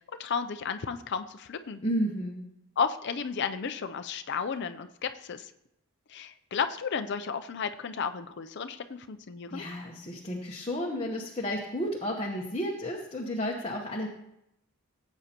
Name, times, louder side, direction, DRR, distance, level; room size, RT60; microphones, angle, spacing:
voice 1, 0.2-1.8 2.8-5.5 6.1-9.6, left 6 dB, 50° left, 8 dB, 0.5 m, -33 dB
voice 2, 1.8-2.4 9.5-14.1, equal, 25° left, -1 dB, 1.0 m, -32 dB
17.0 x 8.1 x 2.9 m, 0.82 s
head